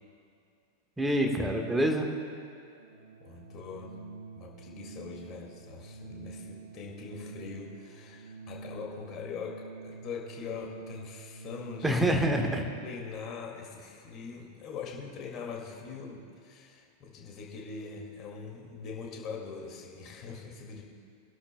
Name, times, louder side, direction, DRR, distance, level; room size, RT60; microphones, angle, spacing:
voice 1, 1.0-2.1 11.8-12.6, right 1 dB, 5° right, 3 dB, 1.4 m, -26 dB
Organ, 2.7-13.1, right 4 dB, 70° right, 0.9 m, -47 dB
voice 2, 3.2-4.0 4.3-12.0 12.8-20.8, left 5 dB, 35° left, 0 dB, 2.2 m, -42 dB
25.0 x 12.0 x 2.2 m, 2.3 s
figure-of-eight pair, 90°, 0 cm